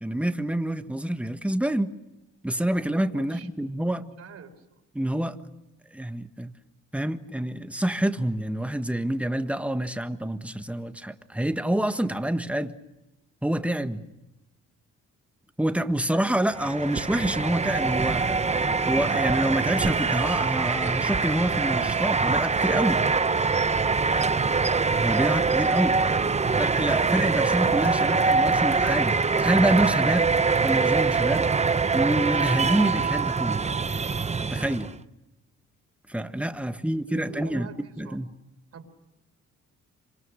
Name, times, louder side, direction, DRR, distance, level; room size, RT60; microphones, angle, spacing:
voice 1, 0.0-1.9 2.4-4.1 4.9-5.4 5.9-6.5 6.9-12.8 13.4-14.0 15.6-18.4 18.9-23.0 25.0-26.0 26.6-30.3 30.6-31.5 31.9-33.7 34.5-34.9 36.1-37.7 38.0-38.3, right 1 dB, 5° right, 1.5 m, -27 dB
voice 2, 3.0-3.5 4.2-4.8 36.5-38.2 38.7-38.9, right 6 dB, 55° right, 4.2 m, -45 dB
sound 1, 16.5-35.0, right 4 dB, 20° right, 0.8 m, -24 dB
26.5 x 25.5 x 6.4 m
cardioid pair, 90°, 30 cm